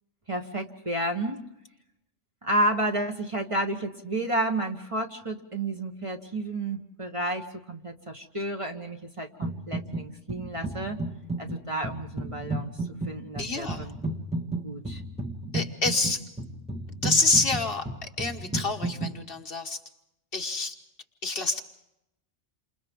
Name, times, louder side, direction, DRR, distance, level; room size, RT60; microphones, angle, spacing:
voice 1, 0.3-1.4 2.4-11.0 11.4-12.7 13.1-14.0 14.6-15.0, right 1 dB, 25° right, 3 dB, 1.4 m, -31 dB
sound 1, 9.4-10.0 10.3-19.2, right 2 dB, 5° right, 1.6 m, -33 dB
voice 2, 13.4-13.9 15.5-16.2 17.0-19.8 20.3-20.8 21.2-21.6, left 3 dB, 50° left, 4 dB, 1.4 m, -27 dB
29.0 x 27.0 x 3.7 m, 0.86 s
omnidirectional pair, 1.2 m